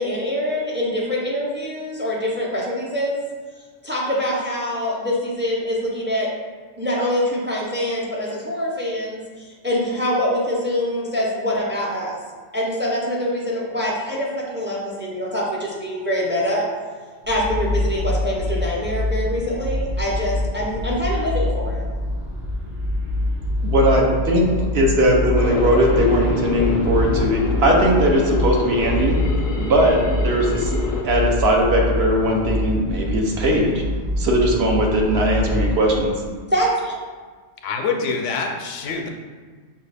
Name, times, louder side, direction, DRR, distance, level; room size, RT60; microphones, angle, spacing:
voice 1, 0.0-3.2 3.8-6.3 6.8-12.2 12.5-16.7 17.3-21.8 36.5-36.9, equal, 15° right, -4 dB, 0.4 m, -24 dB
sound 1, 17.2-36.0, left 1 dB, 85° right, 1.3 m, -25 dB
voice 2, 23.6-24.5 24.7-29.2 29.6-30.7 31.0-33.8 34.2-36.2, equal, 65° right, 0 dB, 0.9 m, -19 dB
sound 2, 25.4-31.0, left 3 dB, 55° left, 0.6 m, -26 dB
voice 3, 37.6-39.1, left 4 dB, 85° left, 3 dB, 0.9 m, -26 dB
5.5 x 2.4 x 3.3 m, 1.5 s
omnidirectional pair, 1.2 m